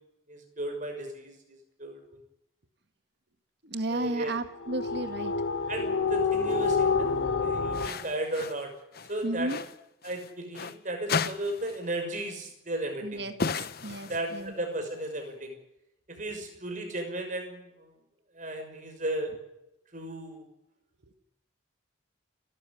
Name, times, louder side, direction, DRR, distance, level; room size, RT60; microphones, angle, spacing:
voice 1, 0.3-2.2 3.9-4.3 5.7-7.1 7.4-8.7 9.1-9.5 10.0-13.2 14.1-15.6 16.1-17.7 18.3-19.3 19.9-20.4, right 1 dB, 40° right, 5 dB, 6.1 m, -35 dB
voice 2, 3.6-5.3 9.2-9.6 13.0-14.5 21.0-21.1, right 1 dB, 55° right, 8 dB, 1.9 m, -34 dB
sound 1, 4.6-7.9, left 5 dB, 75° left, 2.8 m, -28 dB
sound 2, 6.5-6.8 7.7-8.6 8.9-10.8 11.1-11.9 12.1-12.3 13.4-14.5, left 5 dB, 50° left, 0.9 m, -35 dB
29.0 x 13.5 x 10.0 m, 0.86 s
head